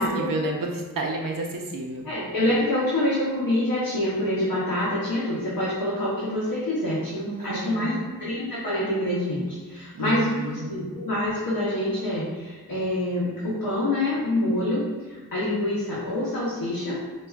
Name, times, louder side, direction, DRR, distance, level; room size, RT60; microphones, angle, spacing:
voice 1, 0.0-2.1 7.3-8.1 9.9-10.8, right 2 dB, 70° right, 0 dB, 0.6 m, -31 dB
voice 2, 2.1-7.9 8.2-14.8 15.1-17.0, left 1 dB, 90° left, -8 dB, 0.8 m, -26 dB
4.2 x 2.4 x 2.3 m, 1.3 s
wide cardioid pair, 55°, 35 cm